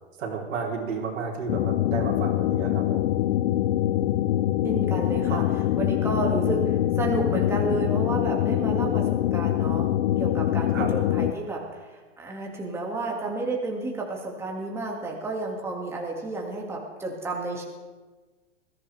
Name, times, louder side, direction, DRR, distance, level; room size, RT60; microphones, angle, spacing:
voice 1, 0.2-3.2 5.3-5.5 10.7-10.9, right 5 dB, 80° right, -1 dB, 3.8 m, -32 dB
sound 1, 1.5-11.3, left 13 dB, 65° left, 0.6 m, -24 dB
voice 2, 4.6-5.4 5.8-9.9 10.2-17.6, right 2 dB, 5° right, -2 dB, 2.1 m, -31 dB
20.5 x 14.5 x 3.4 m, 1.3 s
hypercardioid pair, 130°, 37 cm